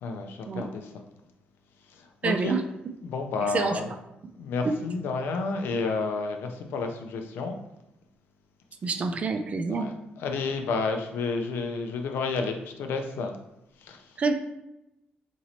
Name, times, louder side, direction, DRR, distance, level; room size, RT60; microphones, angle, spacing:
voice 1, 0.0-0.9 2.2-2.6 3.0-3.9 4.4-7.6 9.7-13.3 13.8-14.0, left 4 dB, 80° left, 5 dB, 0.4 m, -30 dB
voice 2, 2.2-2.6 3.4-3.8 4.6-4.7 8.8-9.9 14.2-14.3, right 4 dB, 40° right, 7 dB, 0.3 m, -27 dB
3.0 x 2.6 x 2.8 m, 0.88 s
cardioid pair, 110°, 4 cm